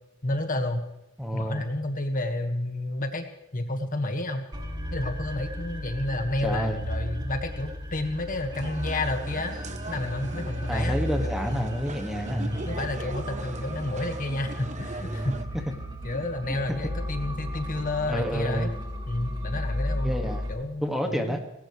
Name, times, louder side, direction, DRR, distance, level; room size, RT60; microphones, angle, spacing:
voice 1, 0.2-0.8 1.3-3.3 3.5-4.5 4.9-9.6 9.9-11.0 11.2-11.7 12.4-15.4 16.0-18.7 19.1-20.1 20.5-21.4, left 1 dB, 40° left, 6 dB, 1.7 m, -30 dB
voice 2, 1.2-1.6 6.4-6.8 10.7-12.6 18.1-18.7 20.0-20.5 20.8-21.4, equal, ahead, 3 dB, 1.9 m, -29 dB
sound 1, 4.5-20.5, equal, 20° right, 2.2 m, -34 dB
sound 2, 8.6-15.4, right 3 dB, 35° right, 1.0 m, -41 dB
19.5 x 18.5 x 3.3 m, 0.93 s
head